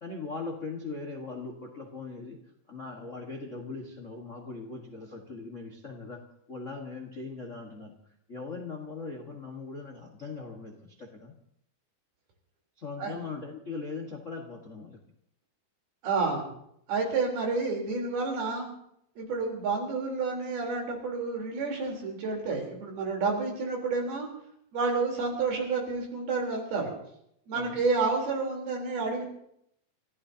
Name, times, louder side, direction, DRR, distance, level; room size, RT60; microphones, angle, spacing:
voice 1, 0.0-2.4 2.7-6.2 6.5-7.9 8.3-11.3 12.8-15.0 27.5-27.8, left 4 dB, 60° left, 1 dB, 0.7 m, -40 dB
voice 2, 16.0-16.5 16.9-18.7 19.2-24.3 24.7-27.0 27.5-29.2, right 4 dB, 80° right, 0 dB, 5.8 m, -30 dB
30.0 x 15.0 x 2.9 m, 0.73 s
omnidirectional pair, 4.3 m